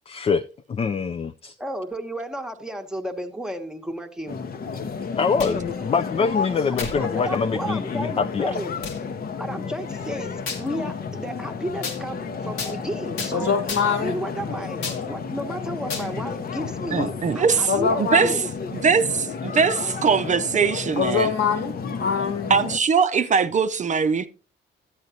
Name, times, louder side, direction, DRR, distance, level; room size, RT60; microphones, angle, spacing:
voice 1, 0.1-1.6 5.2-8.5, left 5 dB, 30° left, 0.4 m, -25 dB
voice 2, 1.6-4.4 7.0-8.8 9.4-13.5 13.9-18.4 21.8-22.0, equal, 5° right, 1.0 m, -33 dB
sound 1, 4.3-22.8, left 5 dB, 50° left, 0.8 m, -32 dB
sound 2, 5.4-5.7 6.8-7.0 7.7-7.8 8.8-9.0 10.5-10.7 11.8-12.0 12.6-12.8 13.2-13.3 13.7-14.0 14.8-15.0 15.9-16.1, left 4 dB, 90° left, 1.6 m, -32 dB
voice 3, 13.3-14.2 17.0-17.1 17.7-18.4 21.0-22.6, left 6 dB, 70° left, 1.6 m, -24 dB
voice 4, 16.9-17.7 18.0-18.3 18.7-21.3 22.5-24.3, right 5 dB, 40° right, 0.5 m, -21 dB
12.0 x 7.9 x 2.8 m
cardioid pair, 90°, 20 cm